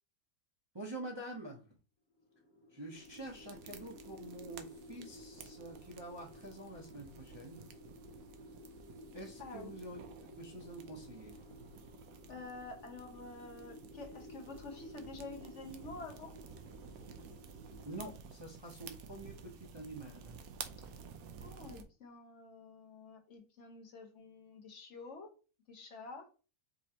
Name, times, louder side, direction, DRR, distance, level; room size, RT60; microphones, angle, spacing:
voice 1, 0.7-1.7 2.7-7.7 9.1-10.0 10.4-11.4 17.8-20.4, right 1 dB, 25° right, 0.7 m, -47 dB
sound 1, 2.2-18.1, left 1 dB, 75° left, 1.4 m, -55 dB
sound 2, 2.9-21.8, right 6 dB, 75° right, 1.1 m, -53 dB
voice 2, 9.4-9.7 12.3-16.4 20.8-20.9 21.4-25.3 25.7-26.3, left 3 dB, 60° left, 1.1 m, -49 dB
5.2 x 3.1 x 2.8 m
omnidirectional pair, 1.5 m